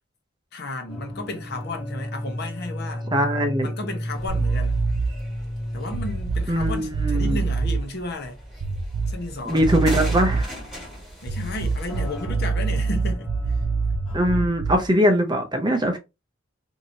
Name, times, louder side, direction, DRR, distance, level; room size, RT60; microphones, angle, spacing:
voice 1, 0.5-3.1 3.6-4.8 5.7-8.4 9.1-9.6 11.2-13.6, left 2 dB, 50° left, 0.8 m, -33 dB
sound 1, 0.9-7.4 7.7-7.8 8.4-8.5 11.9-14.4, left 1 dB, 75° left, 1.1 m, -34 dB
voice 2, 3.1-3.7 6.5-7.4 9.5-10.5 14.1-16.0, equal, 20° right, 0.5 m, -21 dB
sound 2, 4.1-12.3, equal, ahead, 1.6 m, -40 dB
sound 3, 4.3-5.2 5.9-7.8 8.6-9.3 9.6-10.6 11.2-14.9, right 4 dB, 80° right, 0.4 m, -25 dB
2.9 x 2.7 x 2.7 m
head